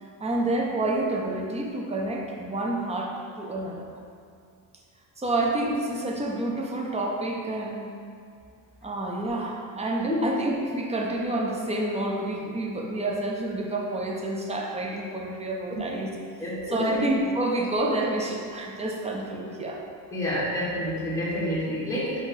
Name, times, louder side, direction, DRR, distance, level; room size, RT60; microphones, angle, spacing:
voice 1, 0.2-3.9 5.2-7.9 8.8-16.1 16.4-19.8, right 2 dB, 15° right, -1 dB, 0.5 m, -28 dB
voice 2, 16.4-16.8 20.1-22.2, equal, 5° left, -8 dB, 1.4 m, -28 dB
4.8 x 2.8 x 3.8 m, 2.3 s
cardioid pair, 120°, 45 cm